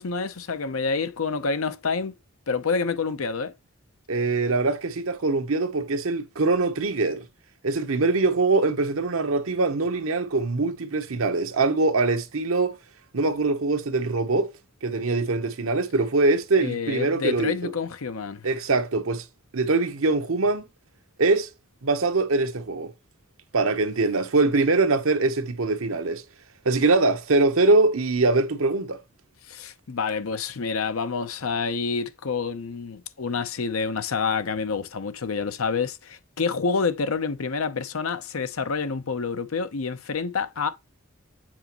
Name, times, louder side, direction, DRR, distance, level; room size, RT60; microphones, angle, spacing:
voice 1, 0.0-2.2 2.5-3.5 16.6-18.5 29.5-40.7, left 5 dB, 85° left, 0.7 m, -28 dB
voice 2, 4.1-7.2 7.6-12.7 13.1-14.5 14.8-17.7 18.4-19.2 19.5-20.7 21.2-21.5 21.8-22.9 23.5-26.2 26.6-29.0, right 3 dB, 75° right, 1.0 m, -23 dB
7.5 x 5.1 x 3.0 m
head